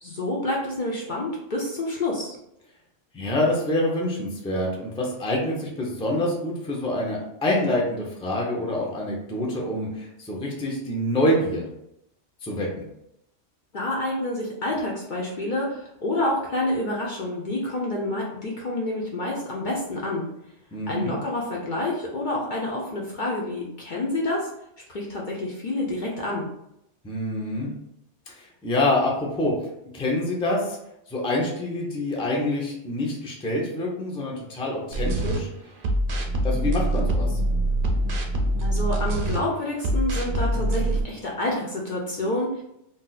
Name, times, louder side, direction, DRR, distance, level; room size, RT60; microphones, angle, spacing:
voice 1, 0.0-2.4 13.7-20.3 20.9-24.5 24.9-26.5 38.6-42.6, left 1 dB, 55° left, -3 dB, 0.6 m, -28 dB
voice 2, 3.1-11.7 12.4-12.8 20.7-21.1 27.0-27.7 28.3-29.5 29.9-30.8 31.1-35.5 36.4-37.4, left 1 dB, 5° left, -2 dB, 0.4 m, -26 dB
sound 1, 34.9-35.4 35.8-39.4 39.8-41.0, right 1 dB, 55° right, 0.6 m, -24 dB
2.6 x 2.3 x 3.9 m, 0.80 s
omnidirectional pair, 1.2 m